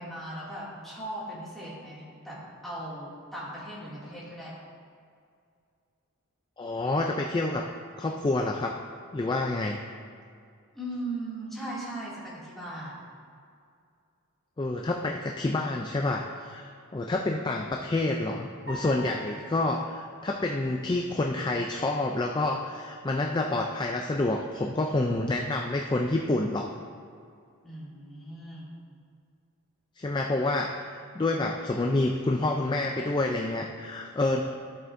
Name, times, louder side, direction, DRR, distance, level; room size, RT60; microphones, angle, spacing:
voice 1, 0.0-4.5 10.7-13.0 27.6-28.7, right 1 dB, ahead, -9 dB, 2.3 m, -38 dB
voice 2, 6.6-7.7 8.0-8.8 9.1-9.8 14.6-26.7 30.0-30.8 31.1-34.4, left 2 dB, 20° left, 2 dB, 0.3 m, -28 dB
sound 1, 18.7-21.1, left 1 dB, 45° right, 2.2 m, -45 dB
13.5 x 7.8 x 2.6 m, 2.3 s
head